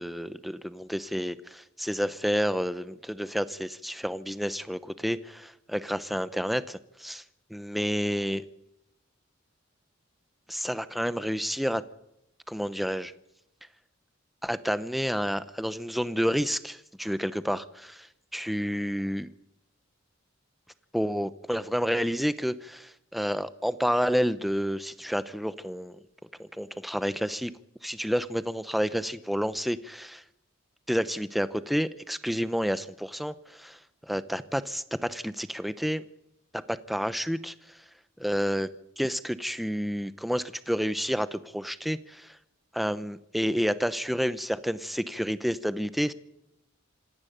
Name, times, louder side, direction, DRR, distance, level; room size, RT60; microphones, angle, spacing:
voice 1, 0.0-7.2 7.5-8.4 10.5-11.8 12.5-13.1 14.4-18.1 18.3-19.3 20.9-26.0 26.4-27.5 27.8-30.2 30.9-33.8 34.1-36.0 36.7-37.5 38.2-38.7 39.0-42.0 42.7-46.1, equal, ahead, 14 dB, 0.8 m, -29 dB
26.5 x 10.5 x 9.3 m, 0.85 s
head